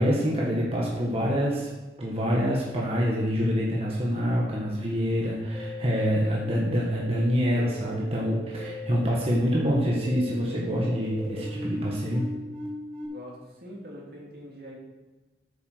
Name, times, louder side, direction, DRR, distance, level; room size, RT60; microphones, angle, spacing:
voice 1, 0.0-1.7 2.0-12.3, equal, 35° right, -4 dB, 1.6 m, -26 dB
sound 1, 5.5-13.1, equal, 10° left, 3.3 m, -39 dB
voice 2, 13.1-14.7, equal, 60° right, -3 dB, 2.7 m, -43 dB
9.1 x 6.9 x 6.7 m, 1.2 s
head